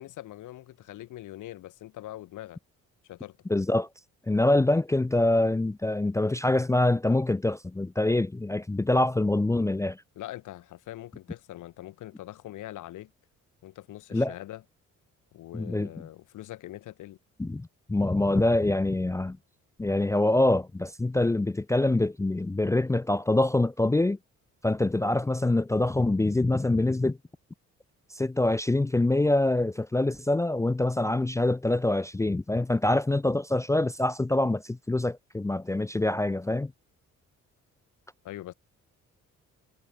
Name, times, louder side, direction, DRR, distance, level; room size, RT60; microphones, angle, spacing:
voice 1, 0.0-2.6 3.0-3.4 10.1-13.1 13.6-14.6 15.3-17.2 38.2-38.5, left 14 dB, 85° left, 2.9 m, -42 dB
voice 2, 3.5-3.9 4.3-10.0 14.1-14.3 15.5-15.9 17.4-19.4 19.8-24.2 24.6-27.2 28.1-36.7, left 2 dB, 10° left, 0.5 m, -25 dB
cardioid pair, 90°, 30 cm